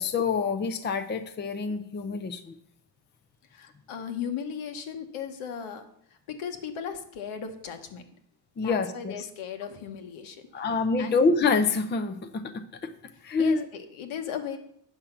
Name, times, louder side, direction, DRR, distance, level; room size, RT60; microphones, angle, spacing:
voice 1, 0.0-2.5 8.6-9.3 10.5-12.9 13.2-13.7, left 4 dB, 20° left, 9 dB, 0.5 m, -26 dB
voice 2, 3.5-5.8 6.3-8.0 8.6-10.6 11.0-11.1 13.4-14.6, left 7 dB, 80° left, 6 dB, 1.4 m, -36 dB
8.7 x 6.6 x 5.9 m, 0.70 s
cardioid pair, 135°, 49 cm